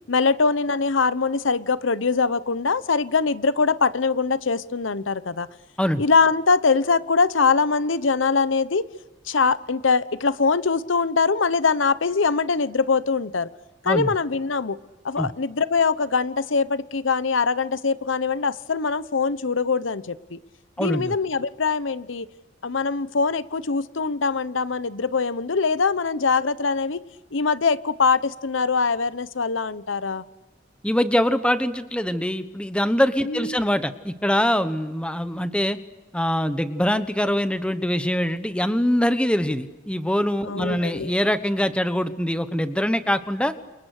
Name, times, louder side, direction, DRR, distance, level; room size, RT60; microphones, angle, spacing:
voice 1, 0.1-5.5 6.0-8.8 9.3-13.5 13.8-14.8 15.0-20.4 20.8-22.3 22.6-27.0 27.3-30.2 33.2-33.5 40.4-41.1, left 4 dB, 90° left, 15 dB, 0.9 m, -22 dB
voice 2, 20.8-21.1 30.8-35.8 36.1-43.5, equal, 5° left, 10 dB, 1.2 m, -23 dB
30.0 x 28.5 x 6.6 m, 1.1 s
head